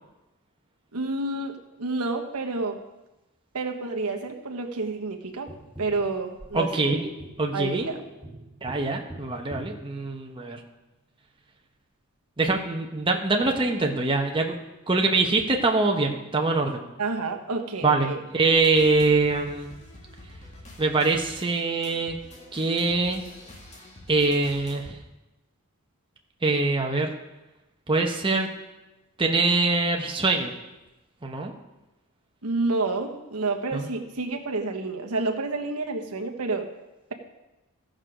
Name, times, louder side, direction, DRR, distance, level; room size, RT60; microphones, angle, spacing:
voice 1, 0.9-2.8 3.5-5.5 5.8-6.9 7.5-8.0 17.0-18.2 32.4-36.7, right 3 dB, 90° right, 3 dB, 1.2 m, -29 dB
Tap, 5.5-10.8 13.4-13.5, right 1 dB, 5° right, 1.5 m, -45 dB
voice 2, 6.5-7.1 7.4-7.9 8.6-10.6 12.4-14.6 14.9-16.9 17.8-18.1 18.3-19.7 20.8-22.2 22.5-23.2 24.1-25.0 26.4-27.1 27.9-28.5 29.2-30.5 31.2-31.5 33.7-33.9, right 3 dB, 25° right, 1 dB, 1.0 m, -23 dB
sound 1, 18.6-24.9, left 1 dB, 30° left, 1.9 m, -47 dB
15.0 x 6.4 x 5.0 m, 1.0 s
head